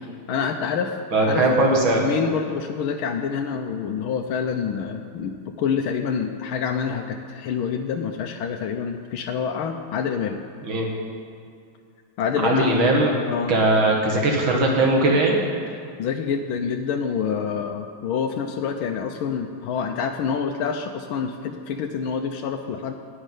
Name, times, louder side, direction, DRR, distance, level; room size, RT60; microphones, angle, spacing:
voice 1, 0.3-1.0 1.2-1.7 2.0-10.4 12.2-12.9 13.3-13.6 16.0-22.9, left 6 dB, 80° left, 3 dB, 1.5 m, -27 dB
voice 2, 1.1-2.0 10.6-10.9 12.4-13.1 13.5-15.4, right 2 dB, 70° right, -1 dB, 2.4 m, -19 dB
11.5 x 8.8 x 9.2 m, 2.3 s
omnidirectional pair, 2.3 m